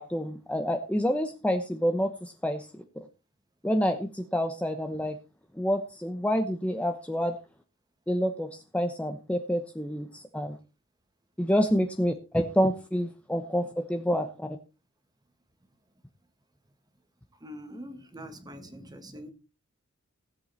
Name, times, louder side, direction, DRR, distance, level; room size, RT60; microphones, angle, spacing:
voice 1, 0.0-2.8 3.6-5.2 5.5-7.3 8.1-10.6 11.4-14.5, equal, 5° left, 5 dB, 1.0 m, -28 dB
voice 2, 17.3-19.3, equal, 20° right, 8 dB, 1.7 m, -44 dB
16.5 x 7.9 x 4.3 m, 0.31 s
head